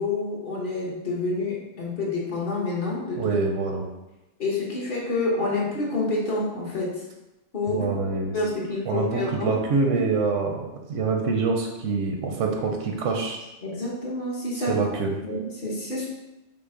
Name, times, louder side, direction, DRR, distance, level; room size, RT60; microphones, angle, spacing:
voice 1, 0.0-3.3 4.4-7.0 7.5-7.8 8.3-9.6 13.6-16.1, left 2 dB, 45° left, -4 dB, 1.1 m, -28 dB
voice 2, 3.2-3.8 7.8-8.3 8.9-13.4 14.7-15.1, right 4 dB, 80° right, 2 dB, 1.0 m, -25 dB
5.9 x 2.0 x 3.7 m, 0.99 s
omnidirectional pair, 1.3 m